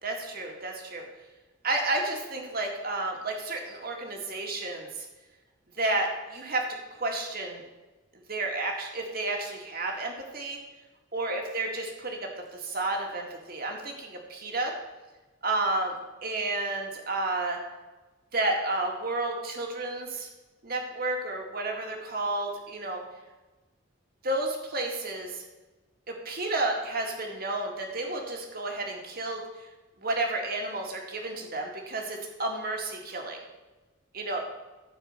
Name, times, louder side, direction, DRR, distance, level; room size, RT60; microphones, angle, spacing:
voice 1, 0.0-1.1 1.6-5.0 5.8-6.7 6.9-7.6 8.3-10.6 11.1-14.7 15.4-16.0 16.2-17.6 18.3-20.3 20.6-23.0 24.2-25.4 26.1-29.4 30.0-33.4 34.1-34.4, right 2 dB, 50° right, 1 dB, 2.1 m, -31 dB
14.5 x 4.8 x 6.6 m, 1.2 s
head